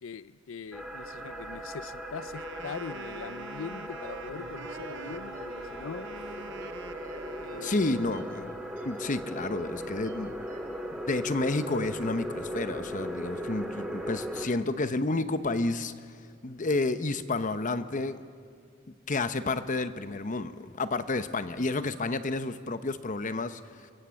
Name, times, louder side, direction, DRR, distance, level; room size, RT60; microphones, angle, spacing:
voice 1, 0.0-6.2 7.4-8.1, left 6 dB, 90° left, 17 dB, 0.5 m, -42 dB
sound 1, 0.7-14.5, equal, 5° right, 2.1 m, -38 dB
Wind instrument woodwind instrument, 2.2-8.0, right 6 dB, 65° right, 0.6 m, -46 dB
sound 2, 4.0-10.9, right 3 dB, 50° right, 2.5 m, -52 dB
voice 2, 7.6-8.5 8.8-10.4 11.1-15.9 16.4-18.2 19.1-23.6, left 2 dB, 40° left, 11 dB, 0.9 m, -30 dB
26.0 x 23.0 x 7.1 m, 2.3 s
head